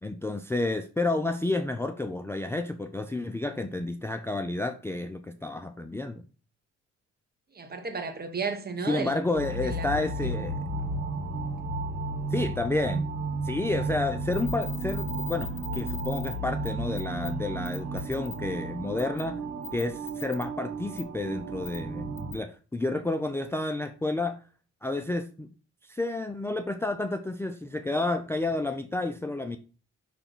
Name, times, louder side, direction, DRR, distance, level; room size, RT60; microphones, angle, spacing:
voice 1, 0.0-6.2 8.9-10.5 12.3-13.1 13.4-19.4 19.7-24.4 24.8-25.5 25.9-29.6, left 2 dB, 10° left, 0.4 m, -30 dB
voice 2, 7.5-9.2 9.6-10.4, right 4 dB, 30° right, 1.2 m, -34 dB
sound 1, 9.4-22.3, right 2 dB, 70° right, 1.9 m, -33 dB
sound 2, 14.3-16.3 16.6-16.7 17.0-17.3 17.7-18.4 19.0-19.2 19.6-20.4 21.0-21.1 21.6-21.8 22.2-22.3, left 7 dB, 85° left, 0.9 m, -40 dB
5.8 x 3.4 x 5.4 m
cardioid pair, 90°, 30 cm